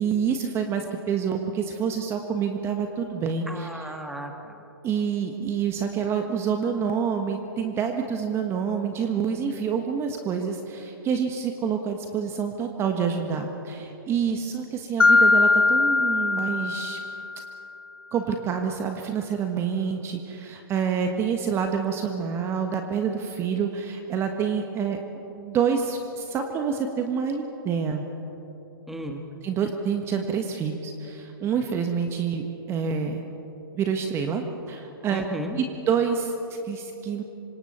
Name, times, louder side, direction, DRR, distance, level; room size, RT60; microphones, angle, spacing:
voice 1, 0.0-3.9 4.8-17.0 18.1-25.0 25.3-28.0 29.4-33.2 33.7-35.2 35.6-37.2, right 6 dB, 20° right, 5 dB, 1.3 m, -27 dB
voice 2, 3.5-4.6 28.9-29.2 35.1-35.6, equal, ahead, 4 dB, 1.5 m, -34 dB
Mallet percussion, 15.0-17.6, left 3 dB, 80° left, 0.8 m, -20 dB
26.5 x 25.5 x 4.3 m, 3.0 s
figure-of-eight pair, 125°, 13 cm